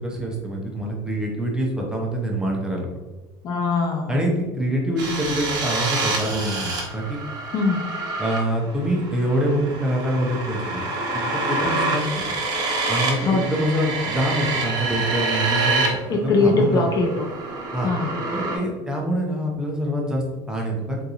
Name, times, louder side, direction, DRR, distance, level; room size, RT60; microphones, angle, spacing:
voice 1, 0.0-2.9 4.1-7.2 8.2-10.9 11.1-12.0 12.9-16.8 17.7-17.9 18.3-21.0, right 1 dB, 5° right, -2 dB, 0.6 m, -25 dB
voice 2, 3.4-4.1 7.5-7.8 13.2-13.5 16.1-17.3 17.8-18.1, left 3 dB, 35° left, 1 dB, 0.4 m, -21 dB
sound 1, 5.0-15.9 16.2-18.6, right 3 dB, 35° right, 0.8 m, -27 dB
3.7 x 2.5 x 2.8 m, 1.2 s
cardioid pair, 140°, 11 cm